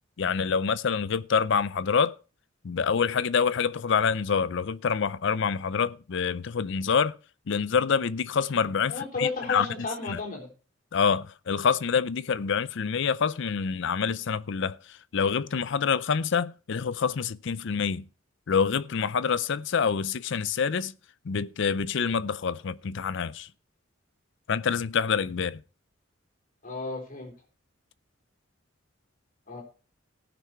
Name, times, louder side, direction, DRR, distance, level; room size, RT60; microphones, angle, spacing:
voice 1, 0.2-2.2 2.6-7.2 7.5-9.7 10.1-10.2 10.9-18.1 18.5-20.9 21.2-23.5 24.5-25.6, left 6 dB, 65° left, 0.5 m, -26 dB
voice 2, 8.9-10.5 26.6-27.3 29.5-29.6, left 4 dB, 40° left, 3.9 m, -32 dB
17.5 x 6.1 x 4.5 m
head